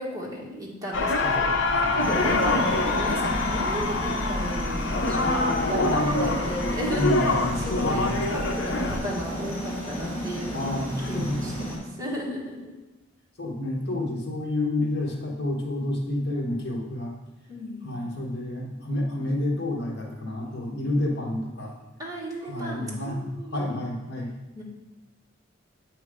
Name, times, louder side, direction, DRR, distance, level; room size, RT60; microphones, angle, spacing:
voice 1, 0.0-1.5 2.0-2.6 3.0-10.8 11.1-12.7 17.5-17.9 22.0-23.8 24.5-24.6, equal, 20° right, -5 dB, 1.4 m, -34 dB
sound 1, 0.9-9.0, left 2 dB, 75° left, 0.7 m, -25 dB
voice 2, 1.2-2.6 5.1-6.4 7.0-8.2 10.5-11.4 13.4-17.1 17.8-21.7 22.4-24.3, left 1 dB, 55° left, -1 dB, 1.2 m, -30 dB
sound 2, 2.0-11.8, equal, 10° left, 1.7 m, -33 dB
7.6 x 3.2 x 4.8 m, 1.1 s
head